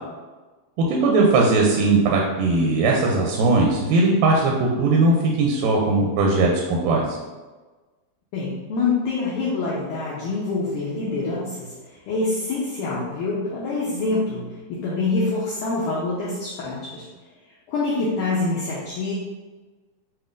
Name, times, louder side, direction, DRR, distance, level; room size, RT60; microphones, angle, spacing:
voice 1, 0.9-7.2, right 3 dB, 80° right, -1 dB, 2.1 m, -19 dB
voice 2, 8.3-17.1 17.7-19.1, left 3 dB, 80° left, -6 dB, 1.8 m, -26 dB
7.4 x 2.6 x 2.5 m, 1.3 s
omnidirectional pair, 4.3 m